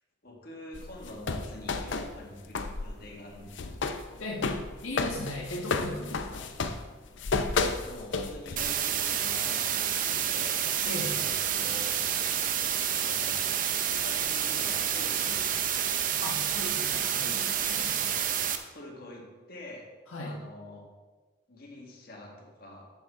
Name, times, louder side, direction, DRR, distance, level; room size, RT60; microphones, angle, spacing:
voice 1, 0.2-3.8 7.6-10.6 11.0-12.0 13.0-13.5 14.0-15.9 17.9-18.2 18.7-19.9 20.2-20.9 21.5-22.8, left 1 dB, 45° left, -2 dB, 1.9 m, -46 dB
sound 1, 0.7-2.9 3.2-8.9, left 4 dB, 65° left, 0.6 m, -32 dB
voice 2, 4.2-4.5 4.8-6.5 10.9-11.2 16.2-17.9 20.1-20.4, left 1 dB, 85° left, -2 dB, 1.4 m, -37 dB
sound 2, 8.6-18.6, right 9 dB, 40° right, 0.6 m, -29 dB
10.5 x 7.5 x 3.6 m, 1.3 s
head